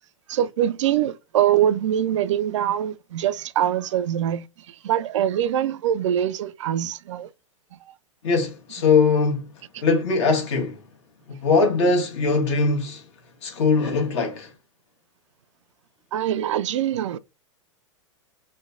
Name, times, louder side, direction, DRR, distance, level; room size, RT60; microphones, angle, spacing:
voice 1, 0.3-7.3 7.9-8.0 16.1-17.2, right 11 dB, 70° right, 0.4 m, -23 dB
voice 2, 8.2-9.5 9.8-10.8 11.3-13.0 13.4-14.5, left 4 dB, 60° left, 1.2 m, -21 dB
3.2 x 2.2 x 3.7 m
hypercardioid pair, 105°, 16 cm